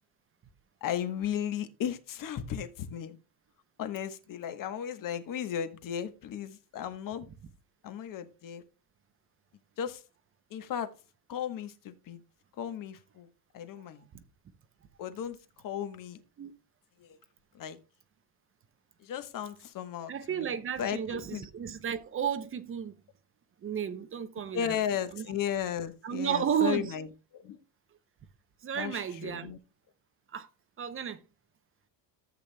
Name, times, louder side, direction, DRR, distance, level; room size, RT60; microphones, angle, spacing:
voice 1, 0.8-3.2 3.8-7.3 7.8-8.6 9.8-10.0 10.5-10.9 11.3-12.2 12.6-13.3 13.5-14.0 15.0-15.4 15.6-16.2 17.0-17.2 17.5-17.8 19.0-20.1 20.4-20.5 20.8-21.4 24.5-27.1 27.3-27.6 28.7-29.6, left 9 dB, 40° left, 1.2 m, -35 dB
voice 2, 20.1-22.9 23.6-24.7 25.1-25.3 26.0-26.9 28.6-29.5 30.3-30.5 30.8-31.2, right 8 dB, 25° right, 0.6 m, -33 dB
14.0 x 8.2 x 2.2 m
cardioid pair, 135°, 49 cm